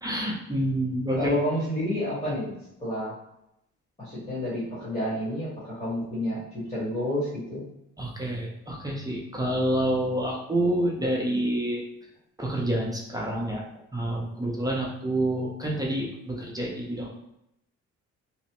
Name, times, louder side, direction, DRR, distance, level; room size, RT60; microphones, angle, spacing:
voice 1, 0.0-1.3 8.0-11.8 12.4-13.6 13.9-17.1, right 1 dB, 10° right, -2 dB, 0.6 m, -28 dB
voice 2, 1.2-2.5 2.8-3.1 4.0-7.6, left 1 dB, 20° left, -10 dB, 1.5 m, -29 dB
3.0 x 2.0 x 2.9 m, 0.82 s
cardioid pair, 90°, 30 cm